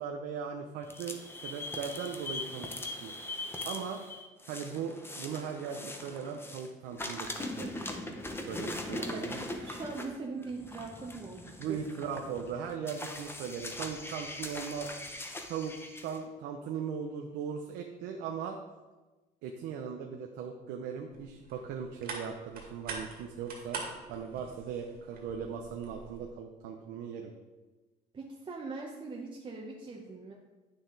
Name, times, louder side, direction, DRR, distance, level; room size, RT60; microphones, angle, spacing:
voice 1, 0.0-2.7 3.0-3.2 3.6-4.0 4.5-8.2 8.5-9.4 11.6-14.9 15.5-15.7 16.0-18.6 19.4-23.8 24.1-27.3, right 7 dB, 85° right, 3 dB, 0.7 m, -39 dB
sound 1, 0.8-6.7 7.0-16.2, left 2 dB, 15° left, 0.9 m, -41 dB
voice 2, 8.8-11.8 28.1-30.3, right 3 dB, 30° right, -2 dB, 1.0 m, -41 dB
sound 2, 21.1-26.3, right 4 dB, 65° right, 2.1 m, -44 dB
9.1 x 6.5 x 3.9 m, 1.2 s
cardioid pair, 110°, 17 cm